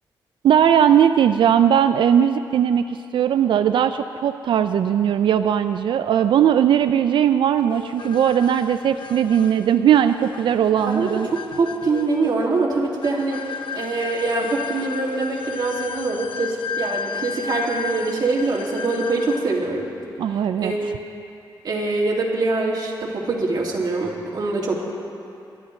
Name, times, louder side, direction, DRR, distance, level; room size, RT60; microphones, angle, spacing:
voice 1, 0.4-11.3 20.2-20.7, right 9 dB, 75° right, 10 dB, 0.3 m, -18 dB
sound 1, 7.7-19.7, left 6 dB, 85° left, 0.5 m, -34 dB
voice 2, 10.9-13.4 13.7-19.9 20.6-20.9 21.6-24.8, right 3 dB, 55° right, -3 dB, 2.3 m, -24 dB
22.5 x 12.0 x 3.2 m, 2.6 s
cardioid pair, 110°, 8 cm